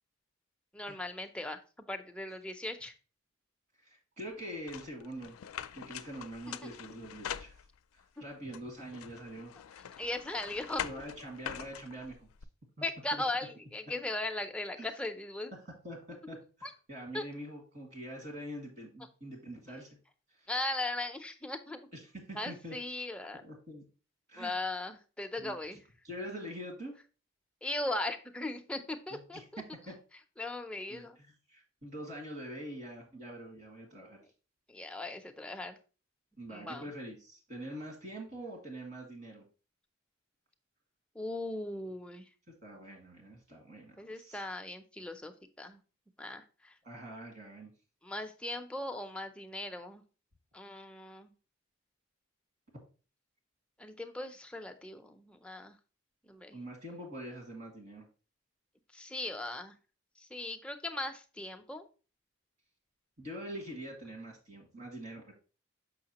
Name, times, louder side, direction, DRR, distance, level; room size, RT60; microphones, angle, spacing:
voice 1, 0.7-2.9 6.5-6.7 10.0-10.8 12.8-15.5 16.6-16.7 17.1-17.2 20.5-21.8 22.3-23.4 24.4-25.8 27.6-29.6 30.4-31.2 34.7-35.8 36.5-36.8 41.1-42.2 44.0-45.8 46.2-46.7 48.0-50.0 50.5-51.3 53.8-55.8 56.3-56.6 58.9-59.8 60.2-61.9, left 2 dB, 5° left, 5 dB, 0.5 m, -38 dB
voice 2, 3.8-5.4 5.7-7.6 8.2-9.5 10.8-12.3 13.1-13.2 14.8-14.9 15.8-19.9 20.4-20.5 21.9-22.8 23.4-23.8 24.3-24.6 25.4-25.5 26.0-27.0 29.1-30.0 30.9-31.1 31.5-34.2 36.4-39.4 42.6-44.4 46.8-47.7 56.5-58.1 63.2-65.3, right 1 dB, 50° right, 0 dB, 1.9 m, -44 dB
sound 1, 4.7-8.0 8.5-12.4, left 9 dB, 90° left, 0.4 m, -44 dB
6.5 x 5.6 x 2.9 m, 0.35 s
head